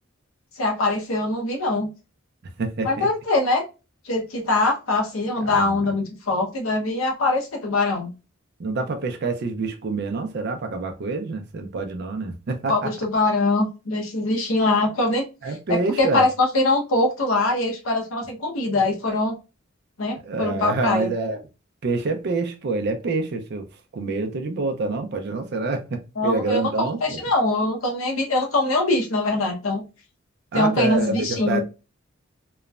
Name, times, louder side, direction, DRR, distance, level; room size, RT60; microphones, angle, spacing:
voice 1, 0.6-1.9 2.8-3.6 4.0-8.1 12.7-15.3 15.7-19.3 20.0-21.1 26.2-29.8 30.5-31.6, left 2 dB, 85° left, 0.8 m, -23 dB
voice 2, 2.6-3.1 5.5-5.8 8.6-12.9 15.4-16.3 20.2-21.4 21.8-23.7 23.9-27.2 30.5-31.6, right 3 dB, 55° right, 0.4 m, -27 dB
3.0 x 2.1 x 2.3 m
head